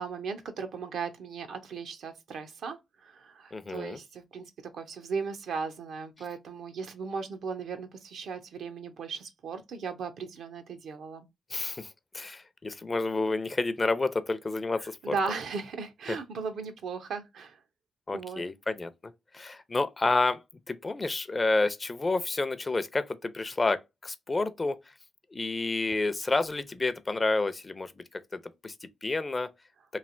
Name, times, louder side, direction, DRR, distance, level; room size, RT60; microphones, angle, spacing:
voice 1, 0.0-11.3 14.8-17.6 18.1-18.4, right 5 dB, 75° right, 0.6 m, -37 dB
voice 2, 3.5-4.0 11.5-11.9 12.1-15.1 18.1-18.9 19.3-20.4 20.7-24.8 25.3-28.0 28.3-29.5, left 3 dB, 35° left, 0.5 m, -29 dB
3.2 x 2.4 x 2.5 m
supercardioid pair, 60°, 0 cm